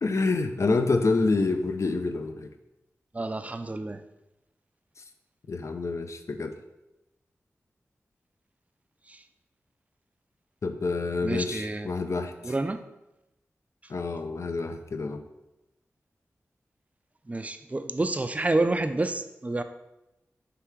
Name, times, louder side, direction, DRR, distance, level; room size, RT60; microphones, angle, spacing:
voice 1, 0.0-2.5 5.5-6.5 10.6-12.5 13.9-15.2, left 3 dB, 60° left, 7 dB, 0.5 m, -27 dB
voice 2, 3.1-4.0 9.1-9.2 11.2-11.9 12.4-12.8 17.3-19.6, right 2 dB, 25° right, 9 dB, 0.4 m, -29 dB
3.5 x 3.3 x 4.5 m, 0.94 s
cardioid pair, 40°, 6 cm